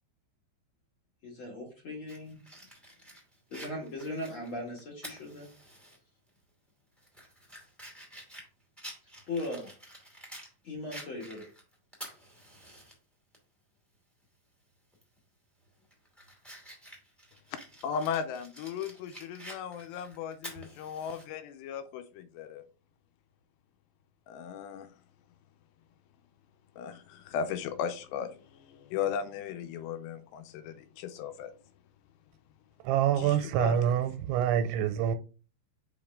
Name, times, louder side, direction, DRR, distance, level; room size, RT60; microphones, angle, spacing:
voice 1, 1.2-2.4 3.5-5.5 9.3-9.7 10.6-11.4, left 2 dB, 50° left, 1.5 m, -38 dB
Fire, 2.1-6.0 6.3-6.4 7.0-10.5 10.9-12.9 13.3-13.4 14.9-15.2 15.6-21.2, equal, ahead, 0.5 m, -49 dB
voice 2, 17.8-22.6 24.3-24.9 26.8-31.5 33.2-33.8, left 7 dB, 85° left, 2.6 m, -36 dB
voice 3, 32.8-35.2, right 9 dB, 90° right, 3.0 m, -26 dB
5.7 x 5.2 x 3.5 m
omnidirectional pair, 5.3 m